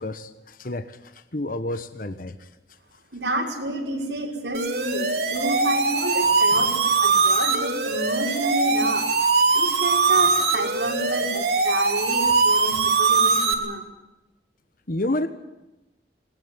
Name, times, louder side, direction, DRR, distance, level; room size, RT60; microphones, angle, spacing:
voice 1, 0.0-2.5 14.9-15.3, left 1 dB, 50° left, 10 dB, 1.3 m, -30 dB
voice 2, 3.1-9.1 9.5-13.8, right 1 dB, 85° right, 1 dB, 5.7 m, -29 dB
sound 1, 4.5-13.5, right 4 dB, 60° right, 3.7 m, -21 dB
20.5 x 19.5 x 9.6 m, 1.0 s
head